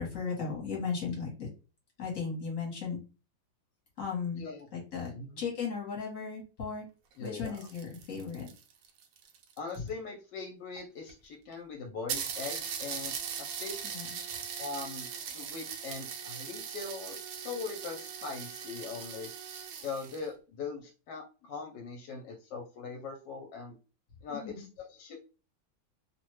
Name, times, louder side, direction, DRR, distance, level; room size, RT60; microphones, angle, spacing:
voice 1, 0.0-1.5 2.0-3.0 4.0-4.4 4.7-6.9 7.2-8.5 13.8-14.1 24.3-24.6, left 5 dB, 50° left, -3 dB, 1.2 m, -36 dB
voice 2, 4.4-4.7 5.1-5.4 7.2-7.7 9.6-13.7 14.6-19.3 19.8-23.8 24.2-25.2, left 4 dB, 80° left, 2 dB, 1.2 m, -41 dB
sound 1, 7.1-9.9 10.8-10.9 11.1-11.2 11.5-11.6 12.1-20.3, right 7 dB, 75° right, 1.2 m, -40 dB
3.0 x 2.1 x 3.0 m, 0.33 s
omnidirectional pair, 2.0 m